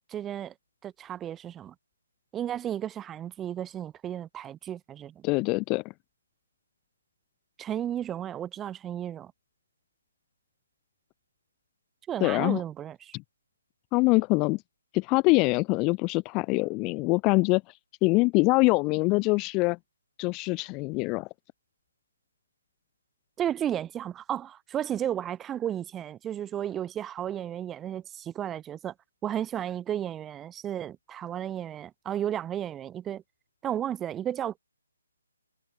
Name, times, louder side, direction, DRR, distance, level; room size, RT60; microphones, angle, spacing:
voice 1, 0.1-0.5 0.8-1.7 2.3-5.2 7.6-9.3 12.1-13.1 23.4-28.9 29.2-33.2 33.6-34.6, right 10 dB, 15° right, 4.2 m, -33 dB
voice 2, 5.2-5.8 12.2-12.6 13.1-13.2 13.9-14.6 14.9-17.6 18.0-19.8 20.2-21.3, left 26 dB, 20° left, 2.4 m, -24 dB
figure-of-eight pair, 145°, 0 cm